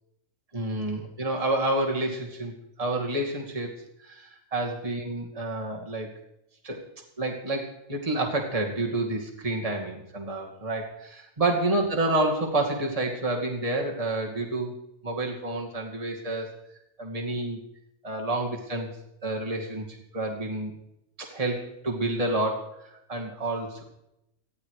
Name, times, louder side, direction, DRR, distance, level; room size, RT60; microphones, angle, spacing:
voice 1, 0.5-3.7 4.0-6.1 6.6-6.8 7.2-14.7 15.0-16.5 17.0-17.6 18.0-18.9 19.2-19.8 20.1-20.7 21.2-23.8, right 2 dB, 25° right, 0 dB, 2.6 m, -29 dB
19.5 x 13.0 x 5.0 m, 0.82 s
omnidirectional pair, 1.6 m